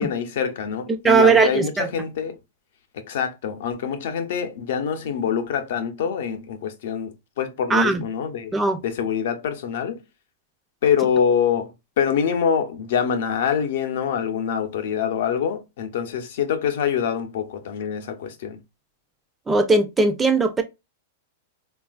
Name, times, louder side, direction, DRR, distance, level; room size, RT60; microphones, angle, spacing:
voice 1, 0.0-2.4 2.9-8.5 8.8-10.0 10.8-11.7 12.0-18.6, left 7 dB, 70° left, 0.6 m, -25 dB
voice 2, 0.9-1.9 7.7-8.0 8.5-8.8 19.5-20.6, right 4 dB, 10° right, 0.3 m, -18 dB
3.2 x 2.3 x 2.3 m
supercardioid pair, 140°, 0 cm